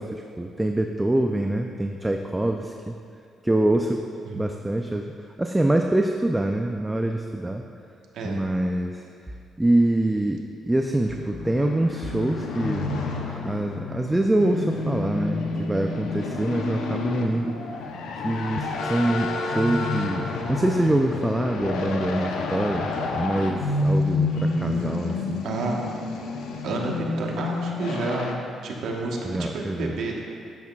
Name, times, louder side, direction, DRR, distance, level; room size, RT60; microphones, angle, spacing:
voice 1, 0.0-3.0 3.4-4.0 4.3-5.1 5.4-7.6 8.2-9.1 9.6-12.9 13.3-17.6 18.2-25.5 29.2-30.0, right 1 dB, 10° right, 3 dB, 0.4 m, -25 dB
sound 1, 11.0-28.3, left 3 dB, 85° left, 0.7 m, -29 dB
voice 2, 24.5-24.9 25.4-25.8 26.6-28.3 28.6-30.2, right 3 dB, 75° right, -1 dB, 1.2 m, -30 dB
11.0 x 8.1 x 2.3 m, 2.4 s
cardioid pair, 90°, 0 cm